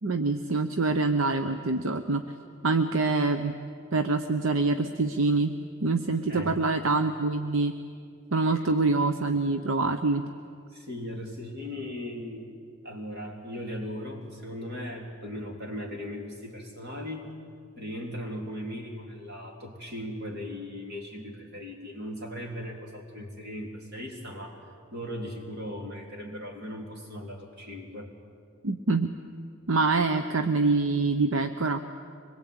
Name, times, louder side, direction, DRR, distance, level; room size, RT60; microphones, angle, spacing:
voice 1, 0.0-2.2 2.6-3.6 3.9-5.5 5.8-7.7 8.3-10.3 28.6-29.1 29.7-31.8, right 3 dB, 70° right, 8 dB, 0.8 m, -25 dB
voice 2, 10.7-12.6 12.8-17.3 17.7-28.1, equal, 50° right, 0 dB, 3.5 m, -38 dB
24.5 x 22.0 x 8.7 m, 2.3 s
head